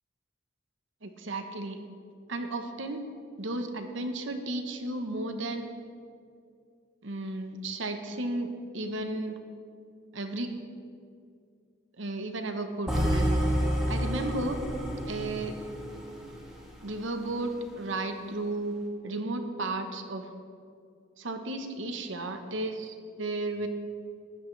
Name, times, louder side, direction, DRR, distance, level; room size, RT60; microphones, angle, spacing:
voice 1, 1.0-1.8 2.3-3.0 3.4-5.7 7.0-9.4 10.1-10.5 12.0-13.4 13.9-14.6 15.1-15.6 16.8-18.8 19.0-20.3 21.2-23.7, right 2 dB, 60° right, 6 dB, 1.0 m, -34 dB
sound 1, 12.9-17.0, equal, 5° right, 1.6 m, -29 dB
15.5 x 11.0 x 3.3 m, 2.4 s
head